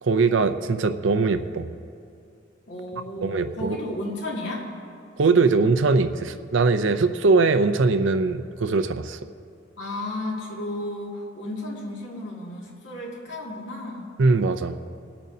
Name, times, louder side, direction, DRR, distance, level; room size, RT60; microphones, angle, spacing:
voice 1, 0.0-1.7 3.2-3.8 5.2-9.2 14.2-14.8, right 4 dB, 80° right, 9 dB, 0.5 m, -21 dB
voice 2, 2.7-4.7 9.8-14.1, left 1 dB, 75° left, -3 dB, 2.2 m, -33 dB
25.5 x 8.7 x 2.7 m, 2.4 s
head